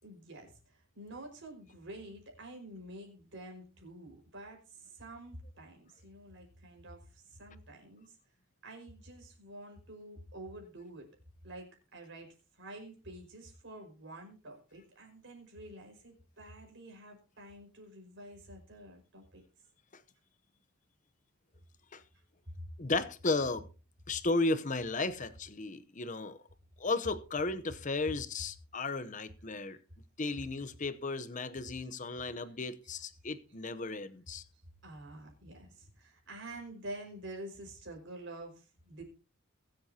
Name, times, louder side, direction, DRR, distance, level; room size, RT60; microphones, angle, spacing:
voice 1, 0.0-8.2 8.6-11.1 11.4-19.4 22.5-22.7 29.1-29.2 31.6-31.7 32.2-32.6 33.8-33.9 34.5-39.0, right 1 dB, 60° right, 5.3 m, -48 dB
voice 2, 22.8-23.7 24.1-26.4 26.8-29.8 30.2-34.4, left 3 dB, 35° left, 0.8 m, -34 dB
22.5 x 7.8 x 2.9 m
head